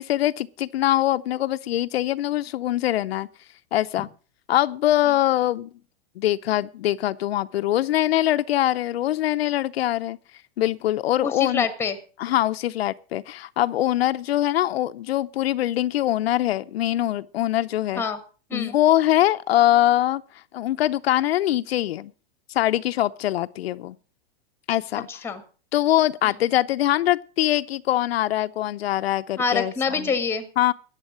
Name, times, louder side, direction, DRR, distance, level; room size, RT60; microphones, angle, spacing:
voice 1, 0.0-3.3 3.7-4.1 4.5-5.7 6.2-10.2 10.6-11.7 12.2-18.0 18.5-20.2 20.5-22.1 22.5-24.0 24.7-25.1 25.7-30.1 30.6-30.7, left 14 dB, 75° left, 0.7 m, -23 dB
voice 2, 11.2-12.0 17.9-18.2 18.5-18.8 24.9-25.4 26.2-26.3 29.4-30.5, left 5 dB, 10° left, 1.4 m, -26 dB
14.0 x 9.1 x 6.3 m
supercardioid pair, 165°, 31 cm